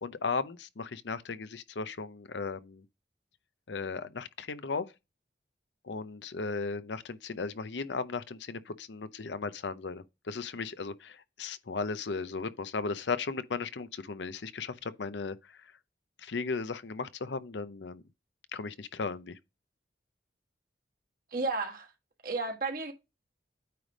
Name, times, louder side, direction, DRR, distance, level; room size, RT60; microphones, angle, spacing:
voice 1, 0.0-2.8 3.7-4.9 5.8-15.6 16.2-18.0 18.5-19.4, left 4 dB, 75° left, 0.6 m, -36 dB
voice 2, 21.3-21.9 22.2-22.9, right 3 dB, 50° right, 1.5 m, -32 dB
9.2 x 3.3 x 5.1 m
head